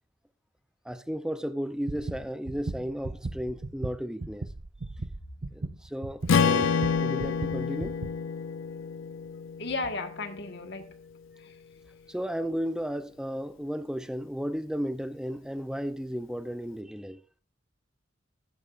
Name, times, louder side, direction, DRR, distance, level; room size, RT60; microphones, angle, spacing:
voice 1, 0.8-4.5 5.5-6.7 7.0-7.9 12.1-17.2, equal, 5° right, 0.7 m, -34 dB
sound 1, 1.9-8.2, right 2 dB, 45° right, 0.6 m, -37 dB
Strum, 6.3-10.5, left 6 dB, 80° left, 0.5 m, -28 dB
voice 2, 9.6-10.9 11.4-11.5, left 3 dB, 60° left, 1.6 m, -34 dB
13.5 x 11.0 x 2.6 m
head